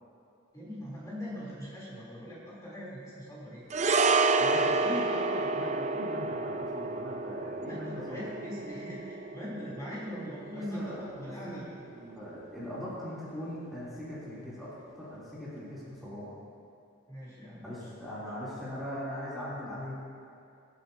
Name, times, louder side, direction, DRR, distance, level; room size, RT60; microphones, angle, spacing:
voice 1, 0.5-3.7 7.6-11.7 17.1-17.9 18.2-18.3, equal, 15° left, -8 dB, 3.3 m, -41 dB
sound 1, 3.7-12.2 12.4-12.6, right 3 dB, 35° right, 0.5 m, -30 dB
voice 2, 4.4-8.2 10.5-11.7 12.0-16.4 17.6-20.0, left 1 dB, ahead, -12 dB, 3.1 m, -40 dB
25.0 x 8.3 x 2.8 m, 2.6 s
head